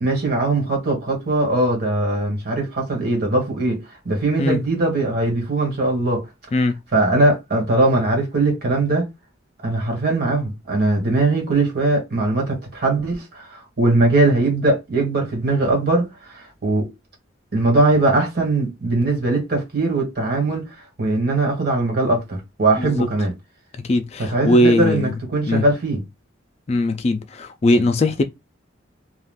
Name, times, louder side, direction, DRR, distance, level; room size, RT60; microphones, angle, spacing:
voice 1, 0.0-6.2 6.9-9.1 9.6-16.9 17.5-20.7 21.0-23.3 24.2-26.0, right 2 dB, 55° right, 1.4 m, -20 dB
voice 2, 23.9-25.1 25.5-25.6 26.7-28.2, left 1 dB, 35° left, 0.3 m, -19 dB
2.4 x 2.3 x 3.5 m
head